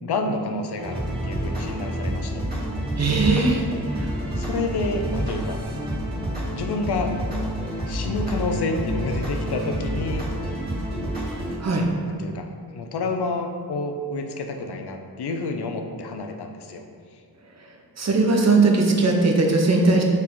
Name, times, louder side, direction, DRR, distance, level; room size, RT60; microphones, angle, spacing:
voice 1, 0.0-2.4 4.4-5.6 6.5-7.1 7.9-10.3 12.1-12.5 12.7-16.8, left 3 dB, 80° left, 5 dB, 0.9 m, -29 dB
sound 1, 0.8-11.5, right 1 dB, 25° right, 1.9 m, -28 dB
voice 2, 3.0-3.6 4.0-4.1 11.6-11.9 18.0-20.0, right 3 dB, 40° right, 1 dB, 1.0 m, -19 dB
6.1 x 4.5 x 6.2 m, 2.2 s
wide cardioid pair, 160°, 39 cm